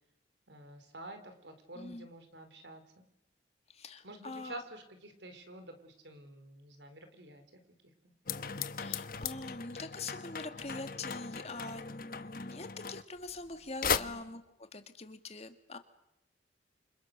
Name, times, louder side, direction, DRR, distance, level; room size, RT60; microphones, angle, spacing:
voice 1, 0.5-3.0 4.0-7.4 8.0-8.1 13.9-14.2, right 1 dB, 80° right, 8 dB, 4.1 m, -49 dB
voice 2, 1.8-2.1 3.7-4.6 8.8-14.4 14.7-15.8, left 3 dB, 35° left, 8 dB, 1.9 m, -44 dB
sound 1, 8.3-13.5 13.8-14.0, left 6 dB, 50° left, 1.0 m, -37 dB
28.5 x 26.5 x 6.7 m, 0.85 s
head